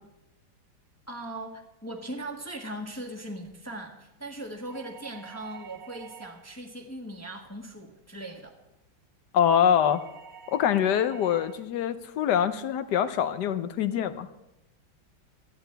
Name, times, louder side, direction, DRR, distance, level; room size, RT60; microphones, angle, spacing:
voice 1, 1.1-8.6, right 1 dB, 10° left, 2 dB, 1.2 m, -39 dB
sound 1, 4.6-6.6 9.8-11.7, right 8 dB, 55° right, 1.2 m, -48 dB
voice 2, 9.3-10.0 10.5-14.3, left 9 dB, 65° left, 12 dB, 1.3 m, -24 dB
18.0 x 13.5 x 3.4 m, 0.91 s
omnidirectional pair, 2.1 m